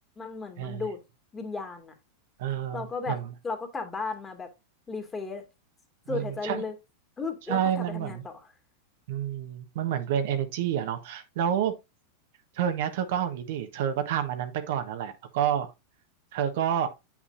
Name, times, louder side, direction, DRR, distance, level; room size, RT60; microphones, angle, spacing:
voice 1, 0.2-1.0 1.3-1.9 2.7-3.2 3.4-4.5 4.9-5.4 6.1-6.7 7.2-8.3, left 4 dB, 20° left, 2.1 m, -34 dB
voice 2, 2.4-3.3 6.1-6.6 7.5-8.2 9.1-11.7 12.5-15.7 16.3-16.9, right 9 dB, 65° right, 1.1 m, -29 dB
8.0 x 6.0 x 2.6 m
hypercardioid pair, 100°, 0 cm